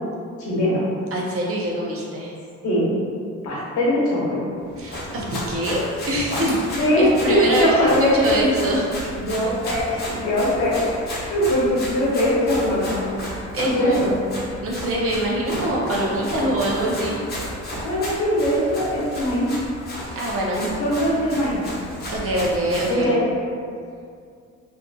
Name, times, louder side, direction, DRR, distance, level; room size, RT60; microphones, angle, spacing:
voice 1, 0.4-0.8 2.6-2.9 3.4-4.5 6.8-8.4 9.1-13.0 13.6-14.1 17.8-19.5 20.5-21.6 22.9-23.2, equal, 70° left, -7 dB, 0.9 m, -21 dB
voice 2, 1.1-2.3 4.8-7.7 8.1-8.8 13.5-14.0 14.6-17.2 20.1-20.6 22.1-23.2, right 1 dB, 50° right, -3 dB, 0.5 m, -24 dB
Run, 4.7-23.0, equal, 35° left, 0.8 m, -33 dB
2.6 x 2.5 x 2.2 m, 2.3 s
cardioid pair, 90°, 30 cm